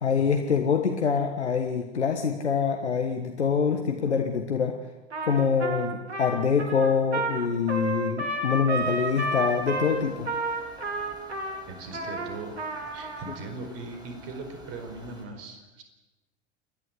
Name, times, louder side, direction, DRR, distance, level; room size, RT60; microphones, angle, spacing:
voice 1, 0.0-4.8 5.2-10.3, left 6 dB, 85° left, 4 dB, 1.5 m, -25 dB
Trumpet, 5.1-13.4, right 2 dB, 90° right, 2.5 m, -31 dB
sound 1, 8.8-15.2, equal, 10° right, 6.4 m, -50 dB
voice 2, 11.7-12.6 12.9-15.8, right 3 dB, 45° right, 6 dB, 4.7 m, -39 dB
29.0 x 11.0 x 8.2 m, 1.1 s
hypercardioid pair, 85°, 33 cm